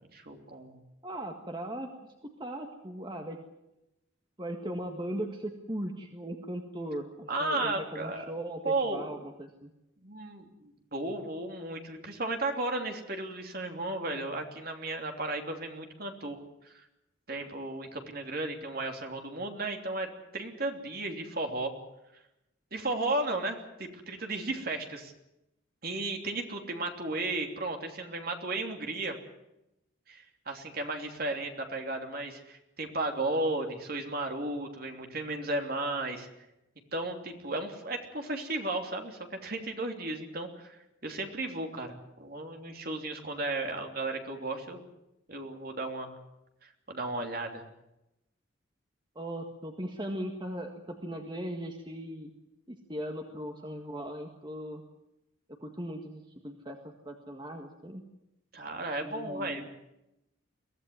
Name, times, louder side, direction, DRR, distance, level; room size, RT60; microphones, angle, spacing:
voice 1, 0.1-0.8 7.3-8.3 8.6-9.1 10.0-16.8 17.3-21.7 22.7-25.1 25.8-29.2 30.1-36.3 36.9-44.8 45.3-46.2 46.6-47.6 58.5-59.7, right 2 dB, 45° right, 4 dB, 3.1 m, -34 dB
voice 2, 1.0-3.4 4.4-9.7 49.2-52.3 52.7-54.8 55.6-58.0 59.0-59.7, right 1 dB, 25° right, 3 dB, 1.7 m, -38 dB
23.0 x 16.0 x 9.6 m, 0.89 s
head